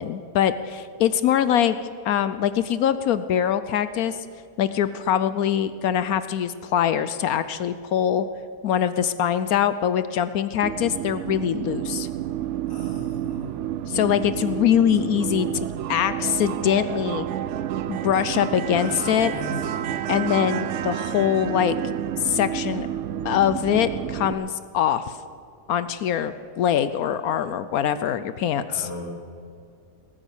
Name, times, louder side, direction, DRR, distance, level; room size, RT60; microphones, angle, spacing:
voice 1, 0.0-1.8 2.0-4.2 4.6-8.3 8.6-12.1 13.9-15.5 15.9-17.3 17.9-19.3 20.1-21.8 22.2-22.9 23.2-25.2 25.7-28.9, left 9 dB, 70° left, 13 dB, 1.0 m, -23 dB
sound 1, 10.6-24.3, right 11 dB, 75° right, 0.6 m, -30 dB
voice 2, 12.7-13.6 18.7-19.9 28.7-29.1, left 2 dB, 50° left, -4 dB, 4.6 m, -37 dB
19.0 x 9.1 x 7.1 m, 2.4 s
omnidirectional pair, 1.7 m